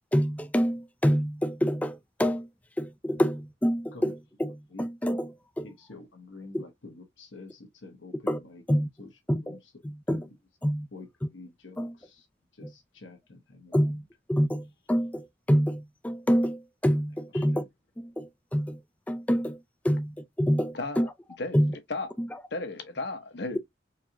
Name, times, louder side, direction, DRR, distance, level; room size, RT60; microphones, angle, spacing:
voice 1, 0.1-2.5 2.8-5.7 6.5-6.6 8.3-8.4 8.7-8.9 9.3-9.6 9.8-10.3 10.6-10.9 11.8-11.9 13.7-14.0 14.3-17.6 18.0-18.8 19.1-19.6 19.8-21.1 21.5-21.7 22.2-22.3, equal, 10° left, 0.4 m, -27 dB
voice 2, 5.6-8.6 9.0-9.1 9.4-9.7 10.1-10.4 10.9-12.3 12.5-13.9, left 2 dB, 90° left, 1.4 m, -47 dB
voice 3, 20.7-21.1 21.4-21.6 21.9-22.1 22.5-23.6, left 2 dB, 60° left, 1.0 m, -34 dB
4.6 x 2.9 x 2.3 m
head